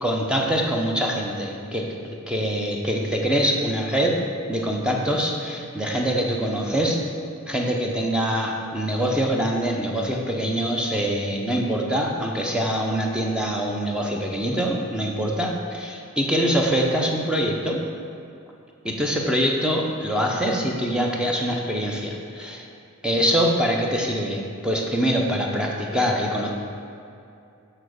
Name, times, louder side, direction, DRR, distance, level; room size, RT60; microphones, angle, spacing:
voice 1, 0.0-4.2 4.5-7.0 7.5-17.8 18.8-22.7 23.0-26.5, equal, 5° right, -1 dB, 0.7 m, -24 dB
7.4 x 4.3 x 6.3 m, 2.6 s
head